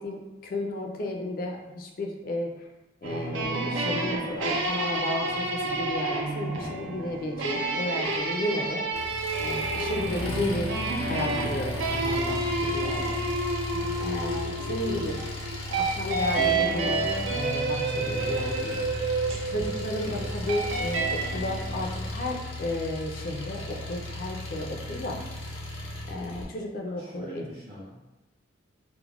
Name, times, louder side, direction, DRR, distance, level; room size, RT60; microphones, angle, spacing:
voice 1, 0.0-2.5 3.0-8.9 9.4-10.7 11.0-13.2 14.0-15.2 15.8-17.1 17.3-18.9 19.5-25.2 26.1-27.5, left 1 dB, 45° left, 1 dB, 0.4 m, -33 dB
sound 1, 3.0-21.8, right 2 dB, 75° right, 0.5 m, -29 dB
Engine, 8.9-26.4, left 1 dB, 85° left, 0.6 m, -36 dB
voice 2, 26.9-27.9, equal, 25° right, -8 dB, 0.5 m, -44 dB
2.3 x 2.1 x 3.2 m, 1.1 s
head